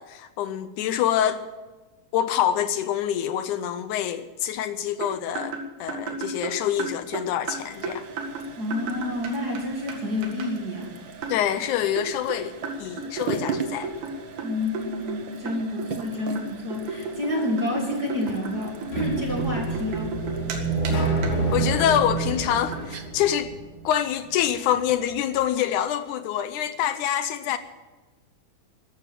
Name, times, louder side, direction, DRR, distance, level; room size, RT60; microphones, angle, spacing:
voice 1, 0.0-1.4 2.1-5.6 5.8-8.1 11.3-13.9 21.5-23.5 23.8-27.6, left 10 dB, 80° left, 1.8 m, -26 dB
sound 1, 5.0-9.6 9.9-10.0 10.2-10.5 11.2-11.4 12.0-15.2 15.5-16.0 16.4-20.6 20.8-20.9 21.2-21.4 21.6-21.9 22.2-22.3 22.5-22.8, right 3 dB, 90° right, 3.7 m, -34 dB
sound 2, 7.4-25.1, right 5 dB, 75° right, 1.1 m, -40 dB
voice 2, 8.6-10.9 14.4-20.1, left 1 dB, 30° right, 2.1 m, -29 dB
sound 3, 18.9-23.8, right 3 dB, 60° left, 4.3 m, -27 dB
13.5 x 12.5 x 7.6 m
omnidirectional pair, 4.1 m